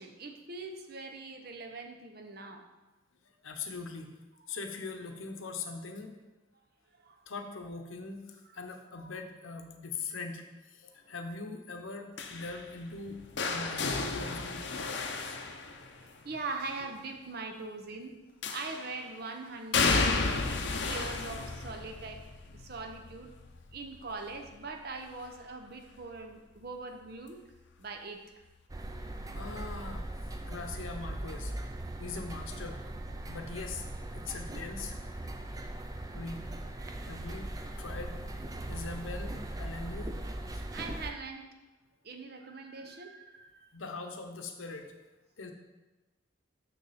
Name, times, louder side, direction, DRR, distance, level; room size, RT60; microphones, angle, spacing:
voice 1, 0.0-2.7 6.9-7.2 11.1-11.2 16.0-18.2 18.5-23.3 23.7-27.4 27.8-28.2 36.8-37.2 40.5-41.5 42.0-43.7, right 3 dB, 50° right, 4 dB, 0.8 m, -42 dB
voice 2, 3.4-4.1 4.5-6.1 7.3-13.2 13.5-14.6 15.2-15.5 17.5-17.6 29.3-30.0 30.4-31.5 32.0-32.8 33.3-33.8 34.1-35.0 36.1-36.5 37.0-37.5 37.8-38.2 38.7-40.1 40.5-40.6 43.7-44.9 45.4-45.5, left 4 dB, 90° left, 5 dB, 0.9 m, -41 dB
sound 1, 12.2-16.2 18.4-19.0 19.7-25.5 25.9-26.3 27.5-27.6, left 4 dB, 60° left, 0.6 m, -33 dB
sound 2, 28.7-41.1, right 1 dB, 20° right, 0.4 m, -39 dB
6.5 x 6.4 x 4.2 m, 1.1 s
head